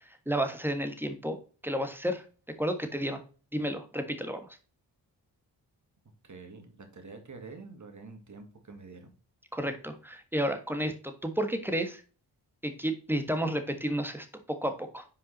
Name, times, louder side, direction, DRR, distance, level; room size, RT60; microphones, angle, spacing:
voice 1, 0.3-1.4 1.6-2.2 2.6-3.2 3.5-4.5 9.5-12.0 12.6-15.1, equal, 5° right, 7 dB, 1.5 m, -31 dB
voice 2, 6.2-9.1, right 4 dB, 40° right, 5 dB, 2.2 m, -47 dB
5.5 x 4.8 x 4.2 m, 0.36 s
supercardioid pair, 45°, 47 cm